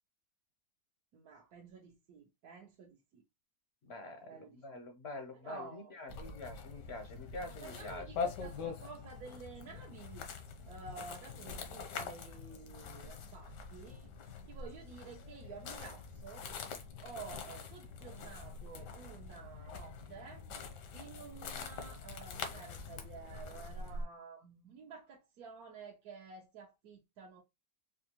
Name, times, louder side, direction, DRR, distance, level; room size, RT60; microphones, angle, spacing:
voice 1, 1.1-3.2 4.2-4.6 5.3-5.9 7.6-10.3 10.7-16.5 17.0-20.4 20.9-27.4, right 5 dB, 65° right, 1.2 m, -51 dB
voice 2, 3.8-8.1, left 2 dB, 60° left, 0.7 m, -46 dB
sound 1, 6.1-24.0, left 5 dB, 85° left, 1.4 m, -44 dB
4.4 x 2.4 x 2.8 m
omnidirectional pair, 1.7 m